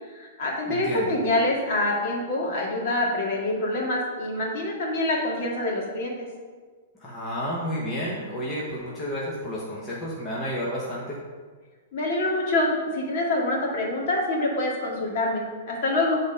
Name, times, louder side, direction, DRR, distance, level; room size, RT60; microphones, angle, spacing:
voice 1, 0.1-6.3 11.9-16.2, left 2 dB, 45° left, -3 dB, 2.2 m, -26 dB
voice 2, 0.7-1.1 7.0-11.2, equal, 15° left, -6 dB, 1.2 m, -31 dB
9.6 x 4.0 x 5.4 m, 1.5 s
hypercardioid pair, 160°, 0 cm